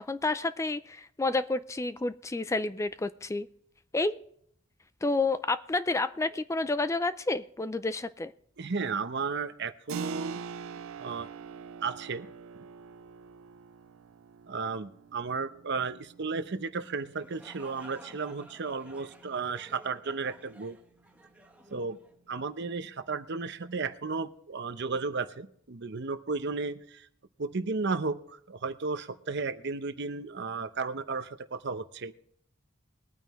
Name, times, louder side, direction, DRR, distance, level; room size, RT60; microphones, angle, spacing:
voice 1, 0.0-3.5 3.9-4.2 5.0-8.3, left 2 dB, 15° left, 13 dB, 0.4 m, -30 dB
voice 2, 8.6-10.4 11.0-11.3 11.8-12.3 14.5-20.8 21.7-22.0 22.3-27.1 27.4-32.1, right 4 dB, 55° right, 11 dB, 0.7 m, -34 dB
Keyboard (musical), 9.9-20.3, right 6 dB, 85° right, 0.4 m, -45 dB
sound 1, 17.0-22.7, right 1 dB, 5° right, 1.1 m, -54 dB
21.0 x 9.2 x 3.1 m, 0.66 s
head